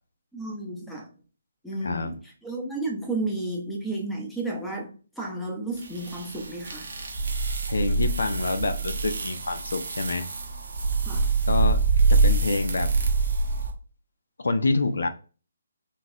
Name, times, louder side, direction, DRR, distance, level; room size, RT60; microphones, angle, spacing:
voice 1, 0.3-1.1 1.6-6.9 11.0-11.3, right 2 dB, 5° left, 0.7 m, -32 dB
voice 2, 1.8-2.1 7.7-10.3 11.5-11.8 12.1-12.9 14.4-15.1, left 2 dB, 65° left, 0.4 m, -27 dB
sound 1, 5.8-13.7, right 3 dB, 55° right, 0.7 m, -25 dB
3.9 x 2.4 x 2.7 m
figure-of-eight pair, 145°, 0 cm